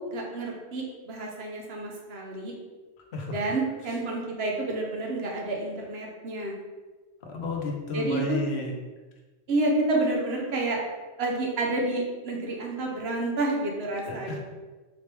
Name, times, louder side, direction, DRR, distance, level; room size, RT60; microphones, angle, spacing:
voice 1, 0.0-2.5 3.3-6.5 7.9-8.2 9.5-10.8 11.2-14.4, right 2 dB, 70° right, -1 dB, 1.1 m, -29 dB
voice 2, 7.3-8.7 14.1-14.4, left 3 dB, 75° left, 1 dB, 1.0 m, -32 dB
3.7 x 3.3 x 3.3 m, 1.3 s
omnidirectional pair, 1.1 m